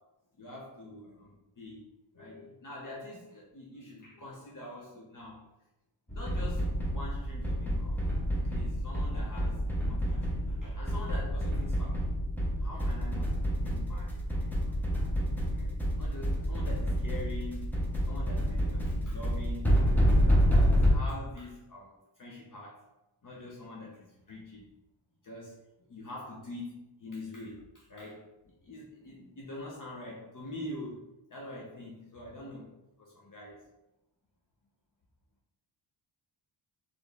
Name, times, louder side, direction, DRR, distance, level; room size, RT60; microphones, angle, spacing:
voice 1, 0.4-5.5 6.1-8.0 8.3-12.0 12.6-13.3 13.6-15.1 15.5-22.9 23.2-24.7 25.2-25.6 25.9-28.3 28.6-31.0 31.3-32.7 33.0-33.6, left 1 dB, 45° left, -3 dB, 0.8 m, -45 dB
sound 1, 6.1-20.9, equal, 5° left, 0.8 m, -28 dB
4.3 x 3.3 x 3.4 m, 0.93 s
wide cardioid pair, 145°, 46 cm